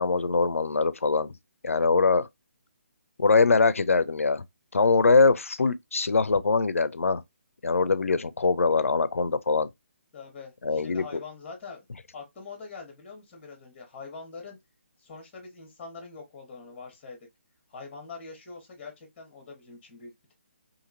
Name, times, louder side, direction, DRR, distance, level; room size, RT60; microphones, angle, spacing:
voice 1, 0.0-1.3 1.6-2.3 3.2-4.4 4.7-7.2 7.6-9.7 10.6-11.0, left 4 dB, 90° left, 0.4 m, -22 dB
voice 2, 10.1-11.8 12.1-14.6 15.0-17.3 17.7-20.3, left 4 dB, 20° left, 1.0 m, -43 dB
2.8 x 2.7 x 2.5 m
figure-of-eight pair, 150°, 7 cm